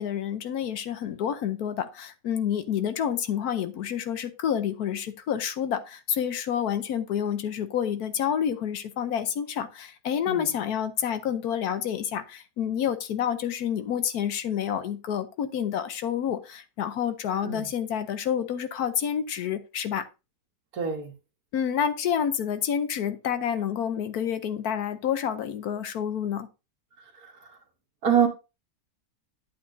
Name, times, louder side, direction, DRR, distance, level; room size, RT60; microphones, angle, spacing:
voice 1, 0.0-20.1 21.5-26.5, left 9 dB, 65° left, 1.1 m, -29 dB
voice 2, 20.7-21.1 27.2-27.5 28.0-28.3, right 7 dB, 55° right, 1.8 m, -25 dB
8.6 x 8.4 x 2.6 m
omnidirectional pair, 1.9 m